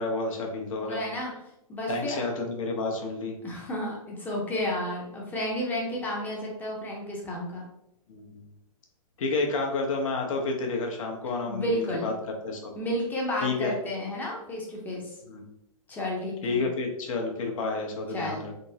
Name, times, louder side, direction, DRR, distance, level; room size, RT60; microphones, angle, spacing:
voice 1, 0.0-1.1 1.9-3.3 8.1-8.4 9.2-12.1 12.4-12.7 13.4-13.7 15.3-15.4 16.4-18.5, left 3 dB, 65° left, 2 dB, 0.8 m, -30 dB
voice 2, 0.8-1.3 1.7-2.2 3.4-7.6 11.4-12.1 12.8-15.2 15.9-16.6 18.1-18.4, left 1 dB, 10° left, -2 dB, 0.6 m, -31 dB
3.5 x 2.0 x 2.7 m, 0.83 s
hypercardioid pair, 145°, 18 cm